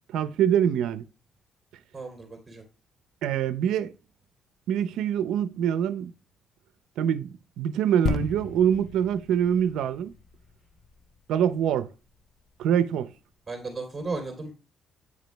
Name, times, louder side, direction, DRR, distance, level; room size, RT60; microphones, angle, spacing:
voice 1, 0.1-1.0 3.2-3.9 4.7-6.1 7.0-10.1 11.3-11.9 12.6-13.1, right 9 dB, 85° right, 0.6 m, -24 dB
voice 2, 1.9-2.6 13.5-14.5, right 3 dB, 20° right, 2.8 m, -35 dB
sound 1, 8.1-11.6 12.3-12.4, left 5 dB, 60° left, 1.0 m, -34 dB
9.6 x 5.1 x 3.4 m
cardioid pair, 90°, 0 cm